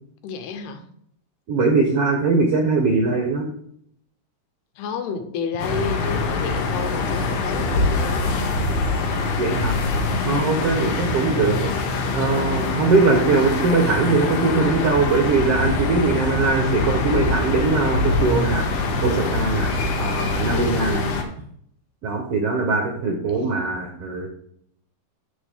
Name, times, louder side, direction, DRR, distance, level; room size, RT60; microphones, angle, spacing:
voice 1, 0.2-0.9 4.8-8.3, left 5 dB, 90° left, 8 dB, 3.1 m, -30 dB
voice 2, 1.5-3.5 9.4-9.7 10.2-11.7 12.1-18.7 19.0-19.7 20.0-21.0 22.0-24.3, right 3 dB, 70° right, 1 dB, 1.4 m, -21 dB
sound 1, 5.6-21.2, left 3 dB, 70° left, 2.8 m, -24 dB
14.5 x 4.9 x 3.6 m, 0.67 s
omnidirectional pair, 4.5 m